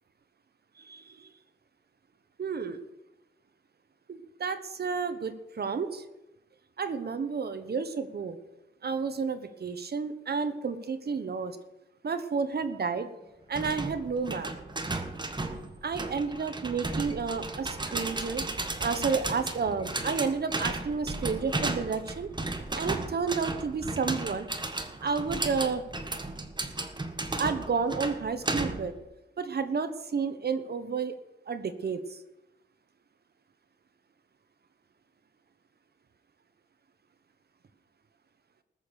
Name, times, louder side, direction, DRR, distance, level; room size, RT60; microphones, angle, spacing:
voice 1, 0.8-1.3 2.4-2.8 4.1-6.0 6.8-8.4 8.8-11.6 12.0-13.1 13.5-14.5 15.8-18.5 18.8-22.3 22.7-24.5 25.0-25.8 27.4-28.9 29.4-31.2 31.5-32.2, right 5 dB, 55° right, 10 dB, 1.2 m, -31 dB
sound 1, 13.5-29.0, right 2 dB, 20° right, 1.3 m, -34 dB
19.5 x 7.0 x 6.5 m, 0.96 s
wide cardioid pair, 110°, 20 cm